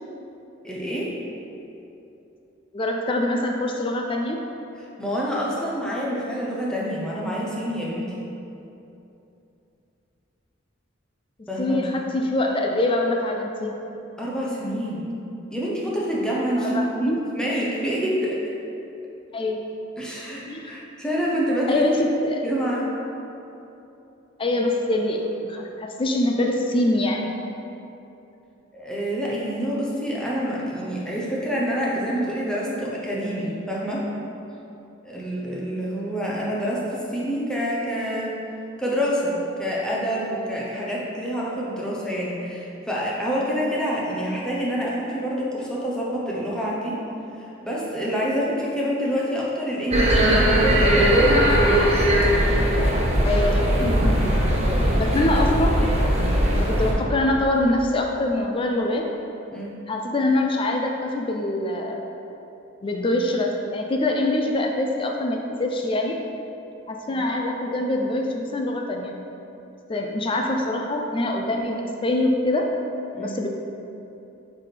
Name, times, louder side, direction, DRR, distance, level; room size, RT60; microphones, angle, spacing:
voice 1, 0.6-1.1 5.0-8.3 11.5-11.8 14.2-15.1 15.5-18.4 20.0-22.2 22.4-22.9 28.7-34.0 35.0-38.3 38.8-47.0 47.4-51.3 59.5-59.7 67.1-67.2 73.1-73.3, equal, 5° left, -5 dB, 0.8 m, -27 dB
voice 2, 2.7-4.4 11.6-13.8 16.6-17.2 19.3-19.6 20.5-20.8 21.7-22.4 24.4-27.3 53.2-54.1 55.0-56.1 56.5-59.0 59.9-62.1 62.8-66.2 66.9-69.1 69.9-72.7 73.2-73.5, left 1 dB, 25° left, 2 dB, 0.4 m, -24 dB
sound 1, 49.9-56.9, equal, 30° right, 0.9 m, -19 dB
8.2 x 4.1 x 3.3 m, 2.9 s
head